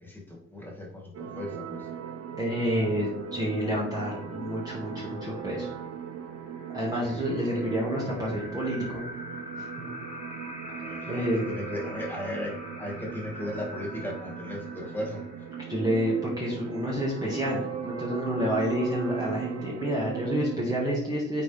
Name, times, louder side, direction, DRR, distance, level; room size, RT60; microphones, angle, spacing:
voice 1, 0.0-1.9 7.5-7.6 10.7-15.2, left 1 dB, 5° left, -3 dB, 2.5 m, -36 dB
sound 1, 1.1-20.6, right 8 dB, 55° right, 0.8 m, -39 dB
voice 2, 2.4-5.7 6.7-9.0 9.8-9.9 11.1-11.4 15.7-21.4, equal, 15° right, -6 dB, 1.9 m, -29 dB
sound 2, 2.9-20.2, left 1 dB, 20° left, 2.2 m, -45 dB
9.2 x 4.1 x 3.5 m, 0.79 s
cardioid pair, 90°, 30 cm